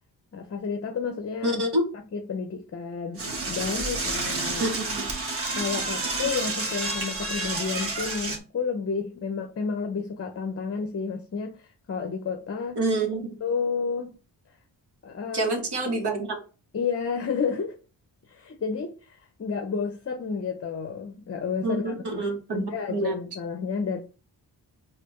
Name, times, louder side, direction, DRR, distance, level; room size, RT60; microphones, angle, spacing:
voice 1, 0.3-1.6 2.1-4.7 5.5-12.8 13.4-14.2 15.0-15.6 15.8-16.0 16.7-17.8 18.3-24.0, left 5 dB, 30° left, 0.6 m, -31 dB
voice 2, 1.4-1.8 4.6-5.0 12.8-13.3 15.3-16.4 21.6-23.1, right 2 dB, 60° right, 1.4 m, -27 dB
Door / Toilet flush, 3.2-8.4, right 2 dB, 30° right, 1.1 m, -30 dB
4.1 x 2.5 x 3.1 m
cardioid pair, 55°, 45 cm